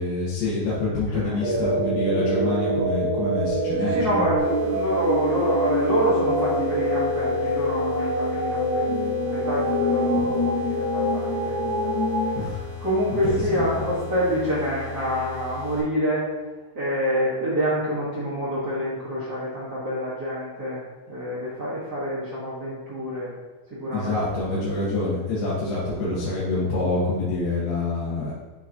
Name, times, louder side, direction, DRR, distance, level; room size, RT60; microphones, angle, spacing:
voice 1, 0.0-4.3 10.1-10.4 12.4-12.6 13.2-13.7 23.9-28.3, left 2 dB, 70° left, -8 dB, 2.8 m, -26 dB
voice 2, 1.1-1.7 2.1-2.2 3.8-12.0 12.2-12.3 12.8-16.2 16.7-20.8 21.1-23.3 23.7-24.2, equal, 50° right, -9 dB, 1.2 m, -27 dB
sound 1, 1.4-12.4, equal, 25° left, 0.6 m, -25 dB
sound 2, 4.4-15.8, left 6 dB, 90° left, 4.3 m, -38 dB
10.5 x 3.9 x 2.9 m, 1.2 s
omnidirectional pair, 4.2 m